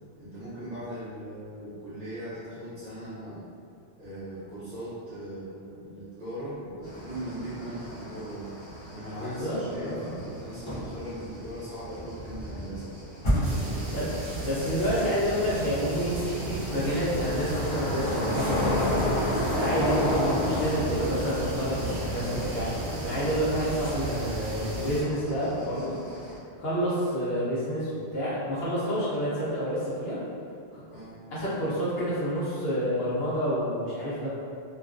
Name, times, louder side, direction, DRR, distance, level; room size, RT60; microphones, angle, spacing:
voice 1, 0.2-3.5 4.0-8.5 8.9-12.9 13.4-14.0 30.9-31.2, right 1 dB, 40° right, -13 dB, 0.7 m, -39 dB
sound 1, 6.8-26.4, left 1 dB, 40° left, 0.4 m, -33 dB
voice 2, 9.2-10.2 13.9-14.1 14.4-18.9 19.4-22.7 23.0-26.0 26.6-30.2 30.7-30.8 31.3-34.3, equal, 70° left, -9 dB, 0.8 m, -29 dB
sound 2, 13.4-25.0, right 2 dB, 80° right, 0.9 m, -35 dB
2.3 x 2.2 x 2.4 m, 2.4 s
omnidirectional pair, 1.1 m